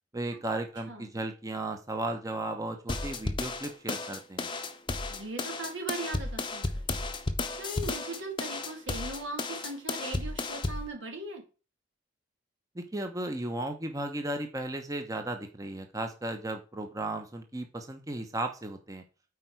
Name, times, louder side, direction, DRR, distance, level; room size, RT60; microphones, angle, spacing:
voice 1, 0.1-4.5 12.7-19.0, right 2 dB, 20° right, 5 dB, 0.8 m, -35 dB
sound 1, 2.9-10.9, left 3 dB, 25° left, 0.7 m, -33 dB
voice 2, 5.1-6.9 7.5-11.4, right 2 dB, 85° right, 2 dB, 2.4 m, -39 dB
8.3 x 4.6 x 4.6 m, 0.34 s
head